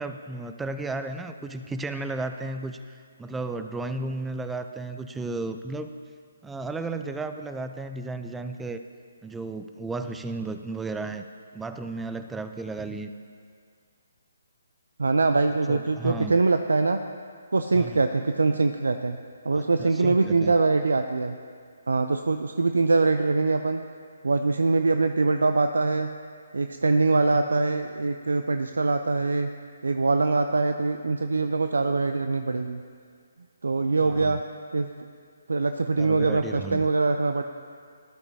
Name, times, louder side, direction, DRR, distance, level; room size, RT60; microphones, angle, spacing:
voice 1, 0.0-2.8 3.2-5.9 6.4-8.8 9.2-11.3 11.5-13.1 15.7-16.4 17.7-18.0 19.6-20.5 27.3-27.4 34.0-34.4 36.0-36.9, right 3 dB, 5° right, 8 dB, 0.5 m, -34 dB
voice 2, 15.0-17.0 17.5-19.2 19.4-21.3 21.9-23.8 24.2-26.1 26.5-29.5 29.8-32.8 33.6-34.4 34.7-34.9 35.5-37.4, right 3 dB, 80° right, 8 dB, 0.5 m, -23 dB
17.5 x 11.5 x 2.8 m, 2.1 s
figure-of-eight pair, 145°, 0 cm